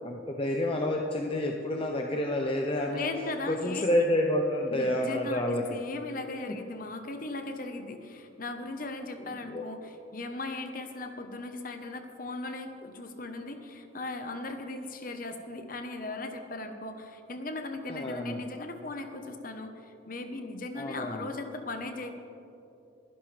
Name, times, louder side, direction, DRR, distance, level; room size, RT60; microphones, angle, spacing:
voice 1, 0.0-3.1 3.5-5.8 6.5-6.6 9.4-9.6 17.9-18.4 20.7-21.2, left 1 dB, 25° left, 1 dB, 0.7 m, -29 dB
voice 2, 2.9-4.1 4.7-22.1, left 2 dB, 45° left, 6 dB, 1.0 m, -38 dB
23.0 x 11.0 x 3.4 m, 2.8 s
head